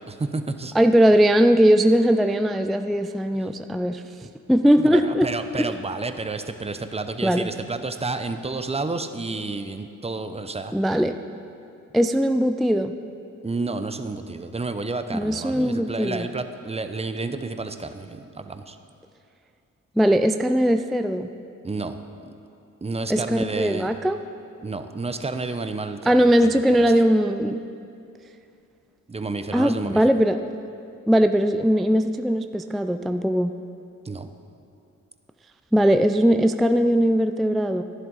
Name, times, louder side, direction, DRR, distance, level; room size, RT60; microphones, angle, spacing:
voice 1, 0.1-0.7 3.3-3.5 4.8-10.7 13.4-18.8 21.6-22.0 22.8-23.9 24.6-26.5 29.1-30.0 34.0-34.3, right 3 dB, 20° right, 9 dB, 0.7 m, -30 dB
voice 2, 0.7-4.0 4.5-5.3 5.5-5.7 7.2-7.5 10.7-11.1 11.9-12.9 15.1-16.3 20.0-21.3 23.1-24.2 26.1-27.6 29.5-30.4 31.1-33.5 35.7-37.8, equal, ahead, 8 dB, 0.3 m, -20 dB
11.0 x 11.0 x 4.0 m, 2.5 s
cardioid pair, 60°, 32 cm